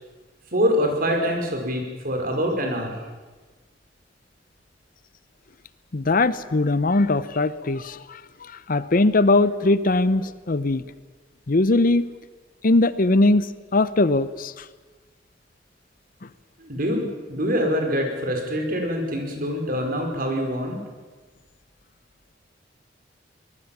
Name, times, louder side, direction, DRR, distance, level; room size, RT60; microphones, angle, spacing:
voice 1, 0.5-2.9 16.6-20.8, equal, 50° right, 2 dB, 5.1 m, -25 dB
voice 2, 5.9-10.8 11.5-12.1 12.6-14.5, left 2 dB, 50° left, 15 dB, 0.8 m, -20 dB
24.0 x 20.0 x 7.3 m, 1.3 s
head